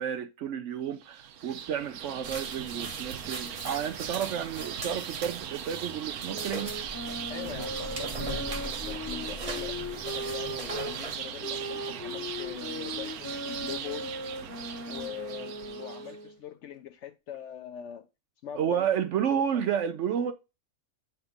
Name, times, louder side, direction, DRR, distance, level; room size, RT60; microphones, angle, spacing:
voice 1, 0.0-6.7 18.6-20.3, right 8 dB, 65° right, 0.8 m, -31 dB
sound 1, 1.0-16.2, right 9 dB, 85° right, 1.2 m, -39 dB
sound 2, 2.2-11.2, right 2 dB, 30° right, 0.8 m, -41 dB
sound 3, 6.3-11.0 11.4-16.4, left 1 dB, 15° left, 0.6 m, -38 dB
voice 2, 7.3-14.2 14.8-18.1 18.4-18.8, left 10 dB, 65° left, 0.8 m, -42 dB
8.0 x 3.5 x 3.5 m
omnidirectional pair, 1.5 m